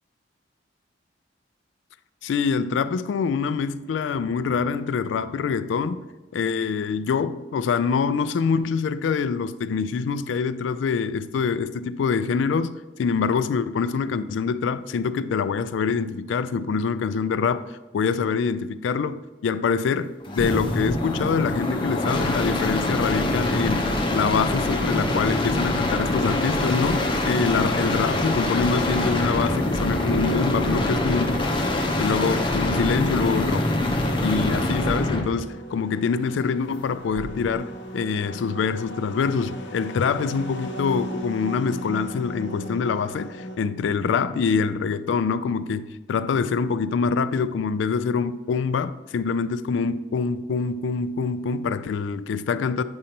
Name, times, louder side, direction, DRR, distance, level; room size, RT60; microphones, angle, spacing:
voice 1, 2.2-6.1 6.3-17.7 17.9-31.4 32.0-33.7 34.2-52.8, left 5 dB, 85° left, 0.3 m, -25 dB
sound 1, 20.3-35.3 37.1-37.5, left 1 dB, 25° left, 0.8 m, -24 dB
sound 2, 26.0-43.6, right 1 dB, 70° left, 0.8 m, -38 dB
8.6 x 5.2 x 2.9 m
head